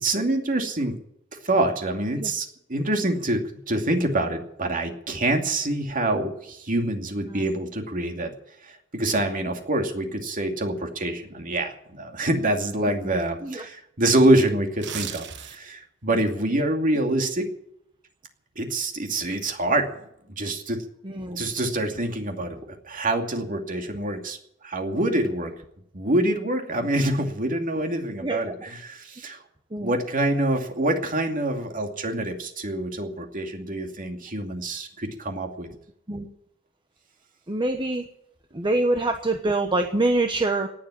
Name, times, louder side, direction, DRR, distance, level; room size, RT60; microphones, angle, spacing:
voice 1, 0.0-1.0 1.4-8.3 8.6-17.5 18.6-19.9 20.3-20.8 21.4-22.6 22.8-24.4 24.6-25.5 25.9-29.4 29.8-35.7, right 1 dB, 45° right, 4 dB, 2.5 m, -26 dB
sound 1, 14.7-15.8 16.2-16.4, right 9 dB, 60° right, 1.3 m, -35 dB
voice 2, 21.0-21.4 28.2-28.5 29.7-29.9 36.1-36.2 37.5-38.1 38.5-40.7, right 2 dB, 25° right, 5 dB, 1.1 m, -25 dB
19.0 x 7.7 x 9.9 m, 0.74 s
head